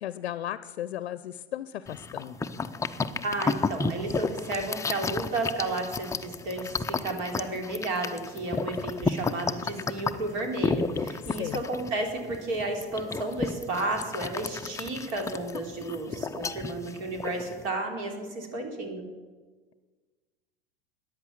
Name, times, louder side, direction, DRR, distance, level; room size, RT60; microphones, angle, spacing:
voice 1, 0.0-2.4 11.2-11.6, left 12 dB, 75° left, 16 dB, 0.6 m, -35 dB
sound 1, 1.9-17.7, left 4 dB, 10° left, 0.5 m, -32 dB
voice 2, 3.2-19.0, right 2 dB, 55° right, 3 dB, 3.4 m, -32 dB
14.0 x 9.7 x 7.3 m, 1.4 s
hypercardioid pair, 90°, 32 cm